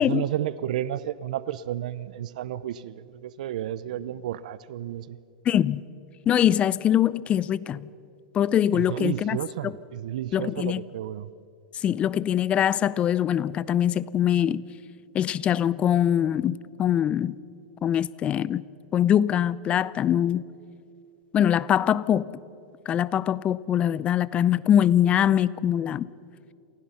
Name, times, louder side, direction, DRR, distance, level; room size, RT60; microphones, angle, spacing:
voice 1, 0.0-5.2 8.7-11.3, right 12 dB, 70° right, 18 dB, 0.6 m, -32 dB
voice 2, 5.5-5.8 6.3-7.9 8.3-9.4 9.6-9.7 10.3-10.9 11.8-14.6 15.1-17.3 17.8-18.6 18.9-20.4 21.3-22.3 22.9-26.1, left 10 dB, 30° left, 20 dB, 0.6 m, -23 dB
28.5 x 16.0 x 5.7 m, 2.6 s
hypercardioid pair, 120°, 4 cm